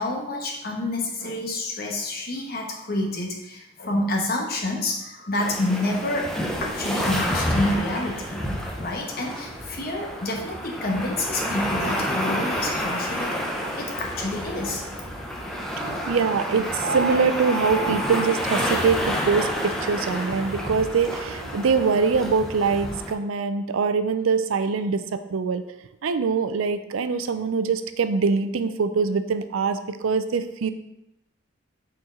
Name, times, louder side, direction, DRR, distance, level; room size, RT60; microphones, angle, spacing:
voice 1, 0.0-6.3 6.6-8.4 8.8-13.4 13.7-14.8, left 1 dB, 50° left, 0 dB, 1.1 m, -28 dB
sound 1, 5.4-23.1, equal, 5° left, 0.6 m, -29 dB
voice 2, 15.8-25.6 26.0-30.7, right 5 dB, 85° right, 10 dB, 0.5 m, -23 dB
6.3 x 4.4 x 3.8 m, 0.88 s
head